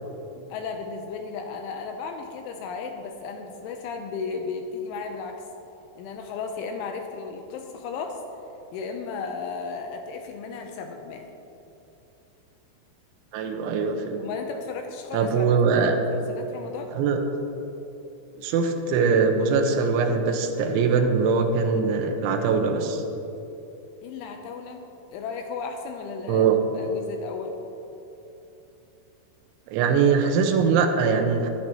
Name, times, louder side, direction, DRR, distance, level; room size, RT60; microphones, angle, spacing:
voice 1, 0.5-5.4 6.0-8.2 8.7-11.3 14.2-16.9 24.0-26.5 26.7-27.6, left 5 dB, 80° left, 4 dB, 3.0 m, -35 dB
voice 2, 13.3-14.2 15.1-16.0 16.9-17.2 18.4-23.0 26.3-26.6 29.7-31.5, right 5 dB, 75° right, 3 dB, 3.1 m, -22 dB
22.0 x 11.0 x 3.0 m, 3.0 s
omnidirectional pair, 5.9 m